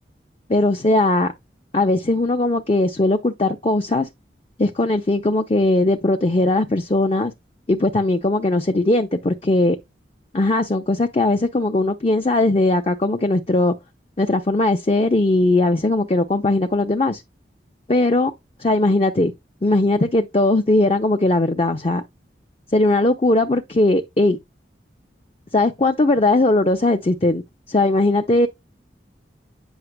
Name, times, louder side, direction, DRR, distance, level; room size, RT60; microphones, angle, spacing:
voice 1, 0.5-1.3 1.7-4.1 4.6-7.3 7.7-9.8 10.3-13.7 14.2-17.2 17.9-18.3 18.6-19.3 19.6-22.0 22.7-24.4 25.5-27.4 27.7-28.5, left 2 dB, 35° left, 0.7 m, -19 dB
9.3 x 5.9 x 2.2 m
head